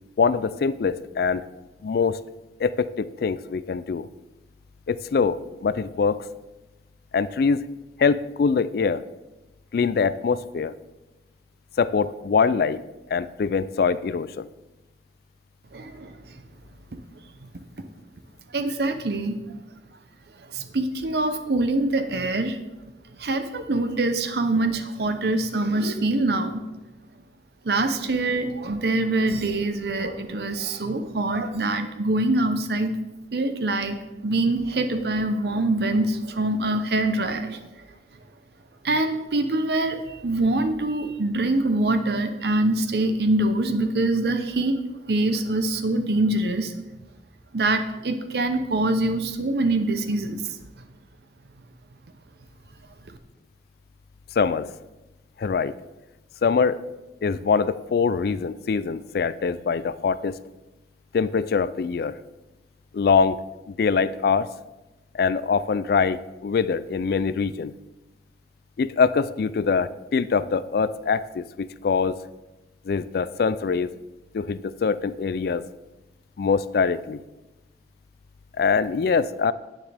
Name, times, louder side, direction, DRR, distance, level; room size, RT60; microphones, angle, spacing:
voice 1, 0.2-1.5 1.8-2.2 2.6-4.1 4.9-6.2 7.1-7.6 8.0-9.0 9.7-10.7 11.8-12.8 13.1-14.5 54.4-54.7 55.4-55.7 56.4-56.8 57.2-60.4 61.1-62.2 62.9-64.5 65.1-67.7 68.8-72.2 72.9-73.9 74.3-75.7 76.4-77.2 78.6-79.5, left 5 dB, 60° left, 16 dB, 0.3 m, -23 dB
voice 2, 15.7-16.2 18.5-19.3 20.5-22.6 23.2-26.7 27.6-33.0 33.3-37.6 38.8-44.8 45.1-46.7 47.5-50.6, right 2 dB, 65° right, 8 dB, 0.7 m, -24 dB
10.0 x 9.3 x 3.4 m, 1.0 s
head